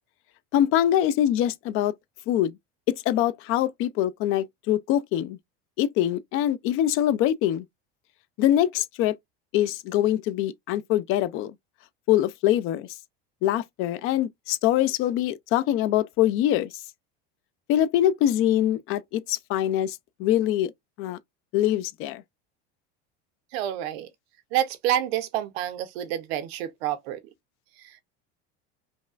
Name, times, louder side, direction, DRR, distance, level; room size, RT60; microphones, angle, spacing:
voice 1, 0.5-1.9 2.3-2.5 2.9-5.4 5.8-7.6 8.4-9.1 9.5-11.5 12.1-12.9 13.4-16.7 17.7-20.7 21.0-21.2 21.5-22.2, left 12 dB, 45° left, 0.4 m, -24 dB
voice 2, 23.5-24.1 24.5-27.2 27.8-28.0, right 11 dB, 80° right, 0.9 m, -28 dB
5.2 x 2.3 x 2.4 m
supercardioid pair, 140°, 30 cm